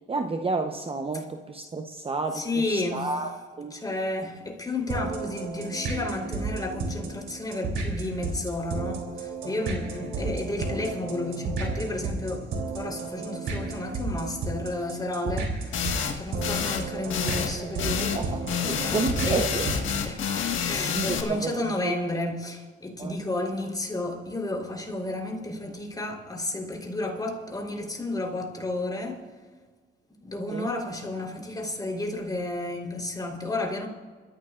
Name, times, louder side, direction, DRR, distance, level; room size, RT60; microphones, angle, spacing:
voice 1, 0.1-3.7 18.1-19.7 20.2-20.3 20.9-22.0 23.0-23.2 30.5-30.7, right 3 dB, 30° right, 0.9 m, -31 dB
voice 2, 2.3-3.2 3.7-18.4 18.7-19.5 20.0-20.2 20.6-29.2 30.2-33.9, left 2 dB, 20° left, 3.8 m, -32 dB
sound 1, 4.9-20.1, right 3 dB, 75° right, 3.3 m, -33 dB
sound 2, 15.7-16.1 16.4-16.8 17.1-17.5 17.8-18.2 18.5-21.2, left 7 dB, 75° left, 1.7 m, -28 dB
27.5 x 14.5 x 2.5 m
cardioid pair, 90°, 20 cm